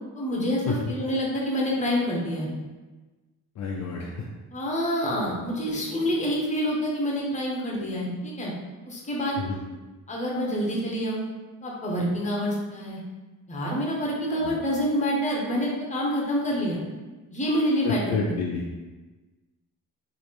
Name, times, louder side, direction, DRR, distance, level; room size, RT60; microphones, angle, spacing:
voice 1, 0.1-2.5 4.5-8.5 8.9-9.4 10.1-11.2 11.6-13.0 13.5-16.8 17.3-18.3, equal, 20° left, -3 dB, 0.8 m, -27 dB
voice 2, 3.6-4.3 9.4-9.6 14.3-14.6 17.8-18.6, left 4 dB, 50° left, -2 dB, 0.5 m, -29 dB
3.1 x 2.7 x 4.3 m, 1.2 s
cardioid pair, 145°, 35 cm